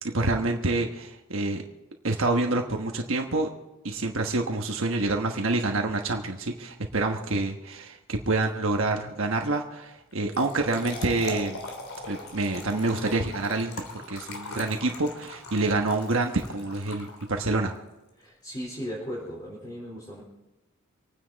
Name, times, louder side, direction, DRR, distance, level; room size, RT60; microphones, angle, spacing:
voice 1, 0.1-1.6 2.0-3.5 3.8-11.6 12.1-17.7, right 2 dB, 65° right, 2 dB, 1.3 m, -27 dB
Trickle dribble / Fill (with liquid), 10.1-17.6, left 2 dB, 75° left, 3.1 m, -40 dB
voice 2, 18.2-20.2, equal, 20° left, -5 dB, 4.1 m, -37 dB
26.5 x 9.8 x 4.1 m, 1.0 s
head